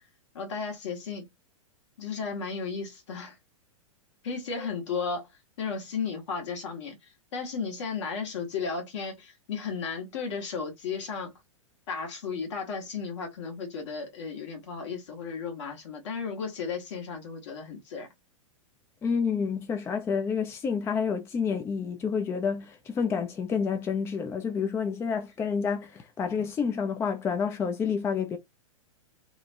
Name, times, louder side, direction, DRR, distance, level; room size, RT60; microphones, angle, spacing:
voice 1, 0.3-1.3 2.0-3.3 4.2-5.3 5.6-7.0 7.3-11.4 11.9-18.1, left 5 dB, 60° left, 1.3 m, -34 dB
voice 2, 19.0-28.4, left 6 dB, 15° left, 0.4 m, -29 dB
2.9 x 2.2 x 2.6 m
hypercardioid pair, 110°, 17 cm